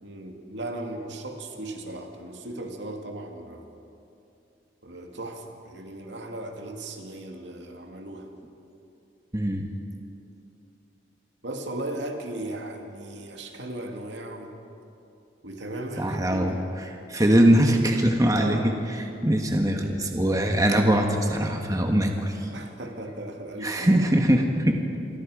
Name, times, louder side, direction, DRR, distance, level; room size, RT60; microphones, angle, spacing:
voice 1, 0.0-3.7 4.8-8.3 11.4-14.6 15.4-16.7 18.3-18.7 22.5-24.0, right 1 dB, 70° right, 3 dB, 2.5 m, -36 dB
voice 2, 9.3-9.7 16.0-22.5 23.6-24.8, right 1 dB, 20° right, 2 dB, 1.6 m, -22 dB
28.0 x 24.0 x 5.1 m, 2.7 s
head